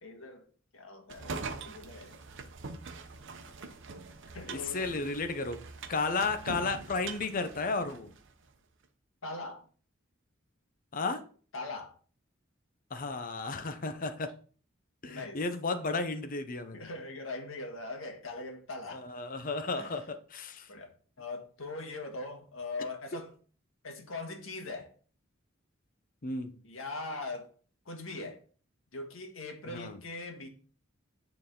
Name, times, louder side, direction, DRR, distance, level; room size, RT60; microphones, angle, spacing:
voice 1, 0.0-0.5 0.7-2.2 4.3-4.9 6.9-7.0 9.2-9.6 11.5-11.9 15.1-15.4 16.7-19.1 19.8-19.9 20.7-20.9 21.2-23.3 23.8-24.9 26.6-27.5 27.8-28.4 28.9-30.5, left 2 dB, 80° left, 1.6 m, -41 dB
sound 1, 1.1-8.3, right 4 dB, 65° right, 0.8 m, -43 dB
voice 2, 4.5-5.6 5.9-8.1 10.9-11.2 12.9-14.3 15.0-16.9 18.9-20.7 26.2-26.5 29.7-30.0, left 3 dB, 45° left, 0.7 m, -33 dB
9.1 x 4.0 x 3.7 m
head